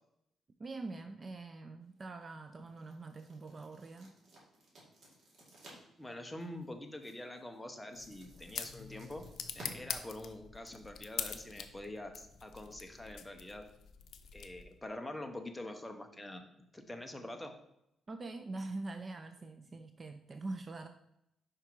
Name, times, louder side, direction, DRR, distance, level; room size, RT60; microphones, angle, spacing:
voice 1, 0.6-4.1 18.1-20.9, right 3 dB, 30° right, 8 dB, 0.4 m, -44 dB
sound 1, 1.8-10.9, right 2 dB, 50° right, 2.3 m, -59 dB
voice 2, 5.7-9.2 9.6-13.6 14.3-16.4 16.7-17.5, left 1 dB, 10° left, 5 dB, 0.7 m, -45 dB
sound 2, 7.9-14.8, left 7 dB, 70° left, 0.6 m, -45 dB
5.5 x 4.9 x 4.5 m, 0.80 s
cardioid pair, 135°, 0 cm